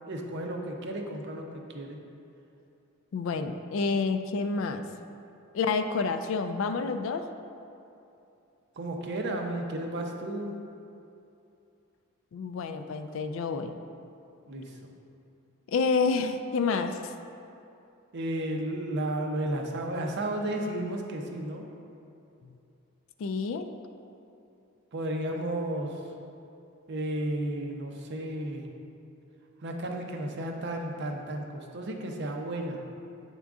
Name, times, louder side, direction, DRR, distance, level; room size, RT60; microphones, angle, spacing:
voice 1, 0.1-2.0 8.8-10.5 14.5-14.7 18.1-21.6 24.9-26.0 26.9-28.6 29.6-32.8, right 1 dB, 50° right, 2 dB, 0.6 m, -33 dB
voice 2, 3.1-4.8 5.5-7.3 12.3-13.7 15.7-17.1 22.4-22.6 23.2-23.7, left 4 dB, 60° left, 8 dB, 0.3 m, -29 dB
8.3 x 3.7 x 3.6 m, 2.7 s
head